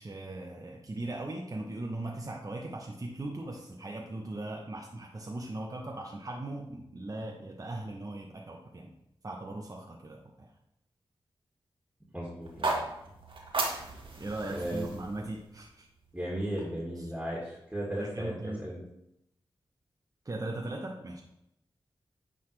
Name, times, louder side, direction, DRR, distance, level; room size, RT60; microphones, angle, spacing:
voice 1, 0.0-8.9 9.2-10.5 14.2-15.9 17.0-17.1 17.9-18.6 20.2-21.2, right 2 dB, 40° right, 0 dB, 1.0 m, -39 dB
voice 2, 12.1-12.9 14.5-14.9 16.1-18.8, right 1 dB, 10° right, -5 dB, 2.3 m, -35 dB
sound 1, 12.4-16.5, right 2 dB, 65° right, 1.6 m, -36 dB
9.6 x 4.0 x 3.4 m, 0.80 s
cardioid pair, 45°, 9 cm